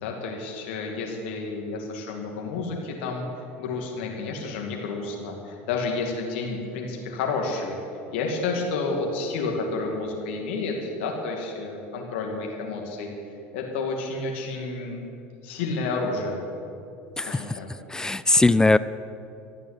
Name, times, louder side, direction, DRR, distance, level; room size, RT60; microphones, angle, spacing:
voice 1, 0.0-3.3 3.6-7.8 8.1-13.1 13.5-15.1 15.4-16.4 17.2-17.7, left 3 dB, 80° left, 0 dB, 2.3 m, -30 dB
voice 2, 17.2-17.6 17.9-18.8, left 2 dB, 10° left, 16 dB, 0.4 m, -20 dB
13.0 x 9.3 x 10.0 m, 2.6 s
supercardioid pair, 100°, 6 cm